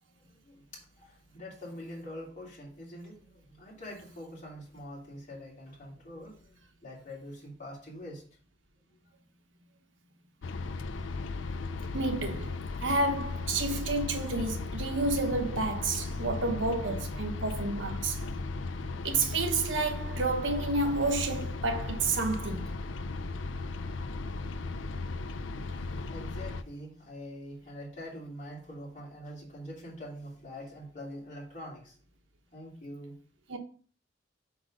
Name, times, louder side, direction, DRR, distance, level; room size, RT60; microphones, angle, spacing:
voice 1, 0.2-8.2 25.1-32.0 32.5-33.1, equal, 40° left, 3.3 m, -45 dB
sound 1, 10.4-26.6, left 3 dB, 85° left, 0.5 m, -36 dB
voice 2, 11.9-18.2 19.0-22.7 33.5-33.6, right 3 dB, 85° right, 1.2 m, -30 dB
5.9 x 5.1 x 5.1 m
head